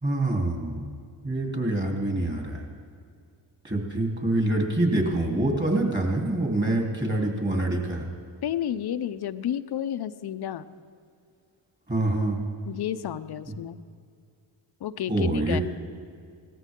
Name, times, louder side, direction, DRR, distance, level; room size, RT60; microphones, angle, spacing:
voice 1, 0.0-0.9 1.2-2.6 3.6-8.1 11.9-12.4 15.1-15.6, right 2 dB, 20° right, 0 dB, 3.4 m, -25 dB
voice 2, 8.4-10.6 12.7-13.8 14.8-15.6, left 10 dB, 55° left, 12 dB, 0.7 m, -31 dB
18.5 x 14.0 x 3.8 m, 2.3 s
supercardioid pair, 60°, 48 cm